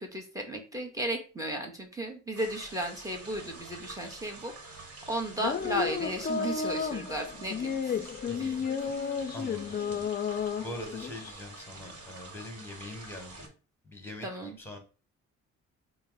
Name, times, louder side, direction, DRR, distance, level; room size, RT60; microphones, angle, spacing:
voice 1, 0.0-8.0 8.4-8.6 14.2-14.6, right 1 dB, 10° right, 3 dB, 1.0 m, -35 dB
sound 1, 2.3-13.5, right 3 dB, 50° right, 1.2 m, -48 dB
sound 2, 5.4-11.3, left 6 dB, 30° left, 0.5 m, -32 dB
voice 2, 8.3-8.7 9.0-10.1 10.6-13.5 13.8-14.8, left 1 dB, 5° left, 3 dB, 1.4 m, -43 dB
4.1 x 2.1 x 3.9 m, 0.34 s
cardioid pair, 90°, 30 cm